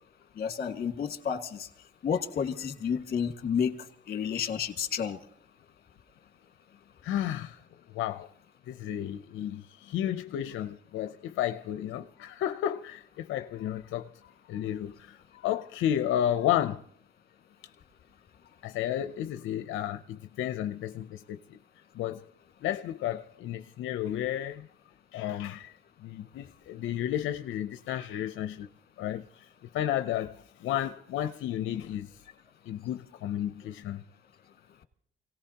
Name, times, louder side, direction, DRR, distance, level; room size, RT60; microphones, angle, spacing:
voice 1, 0.4-1.7 2.0-3.8 4.1-5.2, left 7 dB, 50° left, 1.9 m, -30 dB
voice 2, 7.0-7.6 7.9-8.3 8.7-14.1 14.5-16.8 18.6-21.4 21.9-22.3 22.6-24.7 25.1-28.7 29.0-29.5 29.7-32.1 32.7-34.0, left 11 dB, 80° left, 0.6 m, -32 dB
28.0 x 18.0 x 2.9 m
cardioid pair, 90°, 20 cm